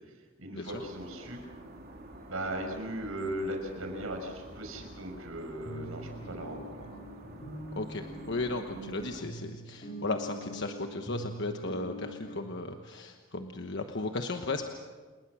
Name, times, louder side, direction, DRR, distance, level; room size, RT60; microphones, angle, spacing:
voice 1, 0.4-1.4 2.3-6.9, right 1 dB, 75° right, 4 dB, 5.8 m, -37 dB
sound 1, 0.7-9.2, right 1 dB, 50° right, 3.5 m, -49 dB
sound 2, 3.9-4.0 4.5-4.6 5.0-5.1 5.6-12.4, right 1 dB, 40° left, 4.5 m, -43 dB
voice 2, 7.8-14.6, left 2 dB, 55° left, 5 dB, 1.2 m, -35 dB
29.5 x 20.5 x 6.3 m, 1.5 s
head